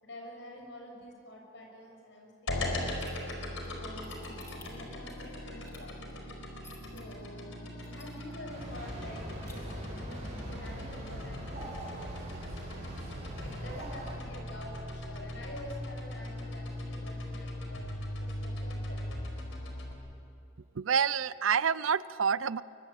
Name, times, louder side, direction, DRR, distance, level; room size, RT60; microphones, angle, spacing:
voice 1, 0.0-3.2 3.6-6.2 6.9-12.3 13.4-17.9 18.2-19.3, left 1 dB, 60° left, 1 dB, 6.7 m, -48 dB
sound 1, 2.5-19.9, left 1 dB, 80° left, 4.6 m, -39 dB
sound 2, 3.0-7.0 7.5-7.6 7.8-8.5 8.8-8.9 9.2-9.5, left 3 dB, 15° left, 3.3 m, -55 dB
sound 3, 8.5-14.2, equal, 35° right, 6.7 m, -42 dB
voice 2, 20.8-22.6, right 7 dB, 80° right, 18 dB, 0.6 m, -28 dB
24.5 x 23.5 x 8.8 m, 2.7 s
head